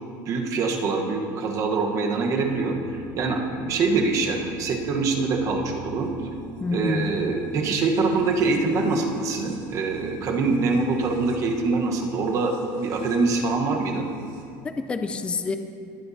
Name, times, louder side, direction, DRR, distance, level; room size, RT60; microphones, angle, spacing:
voice 1, 0.3-6.1 6.7-14.1, right 3 dB, 40° right, 2 dB, 1.2 m, -24 dB
sound 1, 2.4-14.4, right 4 dB, 85° right, 1.7 m, -41 dB
voice 2, 6.6-7.1 14.6-15.6, left 4 dB, 10° left, 7 dB, 0.3 m, -27 dB
20.0 x 7.6 x 2.8 m, 2.4 s
cardioid pair, 155°, 9 cm